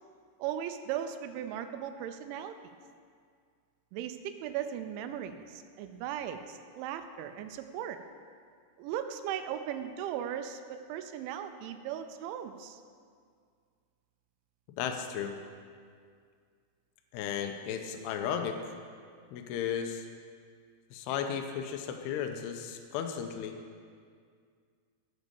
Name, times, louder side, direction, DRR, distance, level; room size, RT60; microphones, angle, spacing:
voice 1, 0.4-2.6 3.9-8.0 8.8-12.8, right 10 dB, 90° right, 8 dB, 3.0 m, -37 dB
voice 2, 14.8-15.4 17.1-18.6 19.3-20.1 20.9-23.5, left 8 dB, 85° left, 5 dB, 2.5 m, -34 dB
12.5 x 5.3 x 6.8 m, 2.1 s
omnidirectional pair, 5.3 m